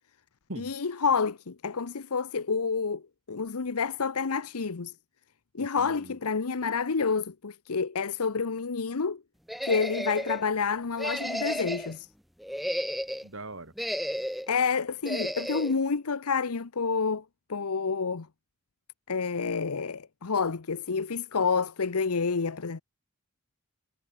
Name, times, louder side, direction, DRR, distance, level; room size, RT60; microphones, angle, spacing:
voice 1, 0.6-3.0 3.3-4.9 5.5-9.2 9.6-12.1 14.5-17.2 17.5-18.3 19.1-22.8, left 5 dB, 85° left, 0.8 m, -29 dB
voice 2, 5.6-6.2 13.2-13.7, right 2 dB, 60° right, 3.8 m, -41 dB
sound 1, 9.5-10.4 11.0-11.9 12.4-13.3 13.8-14.5 15.1-15.7, equal, ahead, 2.9 m, -33 dB
head